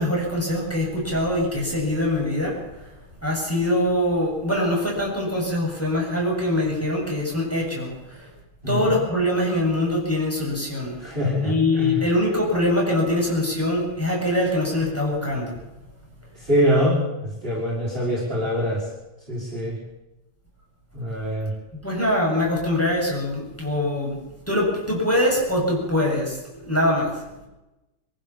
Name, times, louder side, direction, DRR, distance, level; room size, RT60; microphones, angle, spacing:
voice 1, 0.0-2.9 3.2-8.3 8.7-11.0 11.4-15.6 21.7-24.2 24.5-27.2, left 1 dB, 5° left, -3 dB, 7.6 m, -23 dB
voice 2, 11.0-11.9 16.4-18.9 19.3-19.8 20.9-21.5, equal, 25° right, -5 dB, 5.7 m, -24 dB
24.0 x 15.0 x 7.4 m, 1.0 s
omnidirectional pair, 2.3 m